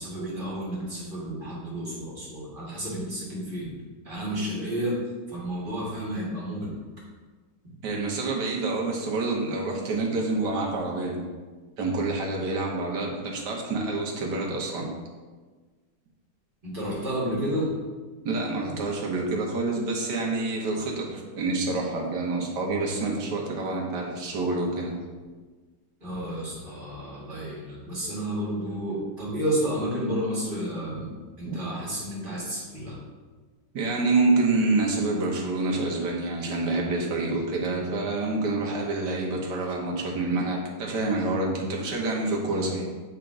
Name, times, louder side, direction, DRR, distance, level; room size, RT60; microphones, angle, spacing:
voice 1, 0.0-3.7 4.0-5.0 5.3-6.8 16.6-17.7 26.0-31.1 31.4-33.0, equal, 30° right, -6 dB, 1.8 m, -31 dB
voice 2, 7.8-11.2 11.8-14.9 18.2-25.0 31.4-31.6 33.7-42.8, right 3 dB, 75° right, -1 dB, 1.7 m, -27 dB
7.8 x 3.7 x 3.7 m, 1.4 s
omnidirectional pair, 1.9 m